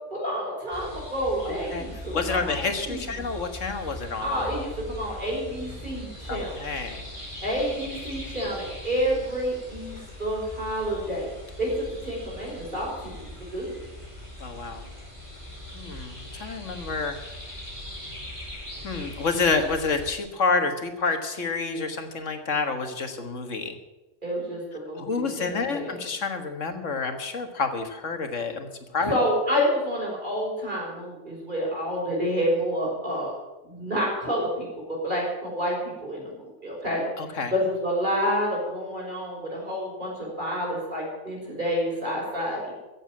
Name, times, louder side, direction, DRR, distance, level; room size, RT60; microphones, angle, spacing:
voice 1, 0.1-3.3 4.2-6.6 7.4-11.3 11.6-13.7 24.2-26.0 29.0-33.3 33.6-42.7, equal, 40° right, -3 dB, 5.9 m, -29 dB
sound 1, 0.7-20.1, left 1 dB, 25° right, 4.5 m, -40 dB
voice 2, 1.5-1.8 2.1-4.5 6.3-7.0 14.4-14.8 15.7-17.2 18.8-23.7 25.0-28.7 28.9-29.1 37.2-37.5, left 4 dB, 90° left, 7 dB, 1.9 m, -28 dB
15.0 x 7.9 x 9.6 m, 1.1 s
omnidirectional pair, 1.2 m